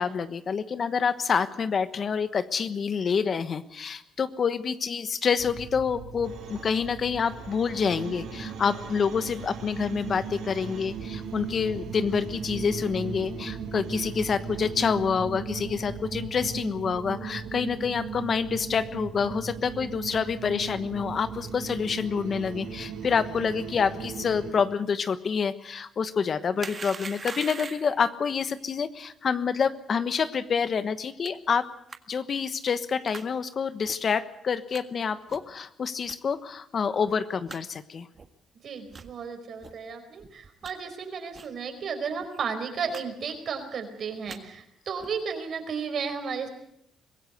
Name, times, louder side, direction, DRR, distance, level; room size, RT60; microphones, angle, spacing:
voice 1, 0.0-31.7 32.1-38.1, left 6 dB, 50° left, 13 dB, 1.2 m, -27 dB
sound 1, 5.4-24.5, right 6 dB, 90° right, 4.3 m, -37 dB
sound 2, 26.6-28.0 31.2-31.3 31.9-32.0 33.0-33.3 33.8-34.0 34.7-34.8 35.3-35.5 36.1-36.2 36.7-36.8 37.1-37.2 37.5-37.6 38.1-38.3 38.9-39.1 39.6-39.7 40.2-40.7 41.3-41.5 41.8-41.9 42.2-42.4 42.9-43.0 43.3-43.7 44.1-44.4 45.0-45.2, right 5 dB, 40° right, 1.7 m, -41 dB
voice 2, 38.6-46.5, right 6 dB, 60° right, 7 dB, 4.7 m, -33 dB
24.0 x 16.5 x 8.1 m, 0.73 s
cardioid pair, 90°, 0 cm